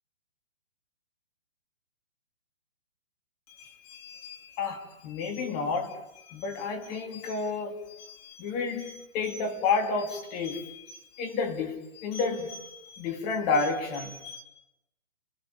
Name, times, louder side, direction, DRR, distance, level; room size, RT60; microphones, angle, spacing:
voice 1, 3.5-14.4, left 4 dB, 25° left, 3.0 m, -31 dB
29.5 x 21.0 x 7.1 m
hypercardioid pair, 155°, 37 cm